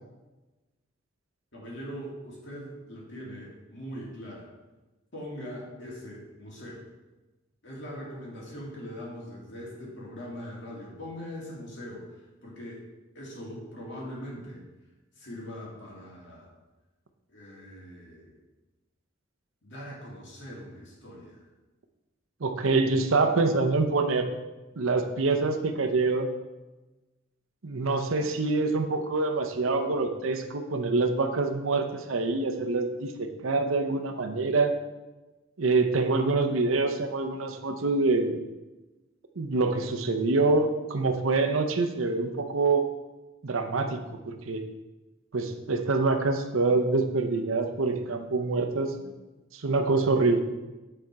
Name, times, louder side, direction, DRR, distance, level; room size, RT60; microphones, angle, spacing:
voice 1, 1.5-4.5 5.1-6.8 7.6-12.1 12.4-12.8 13.1-14.7 15.2-16.5 17.3-18.4 19.6-21.4, equal, 65° left, -4 dB, 2.4 m, -41 dB
voice 2, 22.4-24.3 24.8-26.3 27.6-34.8 35.6-38.4 39.4-42.9 43.4-44.0 44.2-44.6 45.3-49.1 49.5-50.4, right 3 dB, 80° right, 6 dB, 0.7 m, -25 dB
8.8 x 4.3 x 4.7 m, 1.1 s
head